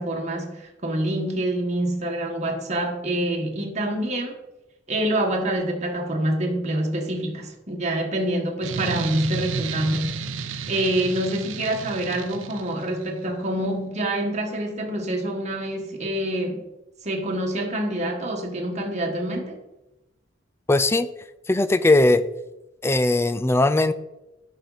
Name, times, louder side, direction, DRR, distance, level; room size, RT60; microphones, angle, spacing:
voice 1, 0.0-4.4 4.9-10.2 10.7-16.6 17.0-19.6, right 1 dB, 35° right, 1.3 m, -26 dB
sound 1, 8.6-13.1, right 5 dB, 85° right, 0.6 m, -32 dB
voice 2, 20.7-21.1 21.5-22.2 22.8-23.9, left 2 dB, 15° left, 0.4 m, -19 dB
11.0 x 5.2 x 4.0 m
head